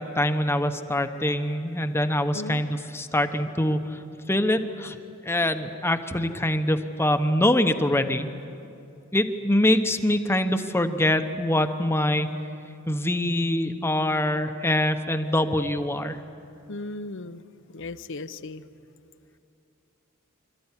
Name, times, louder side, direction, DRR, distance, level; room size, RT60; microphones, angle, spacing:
voice 1, 0.0-3.9 4.3-5.0 5.2-8.3 9.1-12.3 12.9-16.2, left 1 dB, 10° left, 8 dB, 0.9 m, -24 dB
voice 2, 16.7-17.4 17.7-18.6, left 2 dB, 60° left, 11 dB, 0.8 m, -36 dB
26.5 x 14.0 x 9.8 m, 2.6 s
head